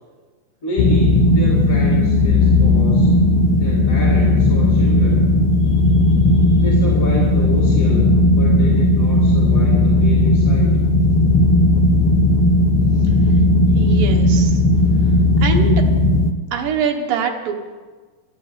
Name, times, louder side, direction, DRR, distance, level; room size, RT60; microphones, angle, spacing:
voice 1, 0.6-3.1 3.6-5.3 6.6-10.8, left 1 dB, 25° left, -5 dB, 2.4 m, -28 dB
sound 1, 0.8-16.3, left 1 dB, 90° left, 1.4 m, -15 dB
voice 2, 13.0-13.3 13.7-14.6 15.0-15.1 15.4-15.8 16.5-17.5, right 6 dB, 75° right, 3 dB, 3.1 m, -24 dB
12.5 x 12.0 x 8.2 m, 1.4 s
omnidirectional pair, 4.1 m